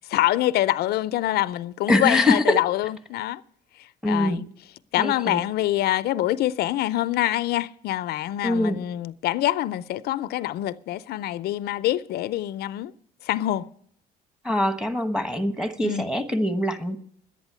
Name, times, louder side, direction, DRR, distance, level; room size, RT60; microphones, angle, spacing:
voice 1, 0.1-3.4 3.8-4.5 4.9-12.9 13.2-13.7 15.8-16.1, left 14 dB, 70° left, 0.5 m, -25 dB
voice 2, 1.9-2.5 4.0-4.4 5.0-5.4 8.4-8.8 14.4-17.0, left 1 dB, 5° right, 1.2 m, -23 dB
11.5 x 8.9 x 8.3 m
cardioid pair, 110°, 17 cm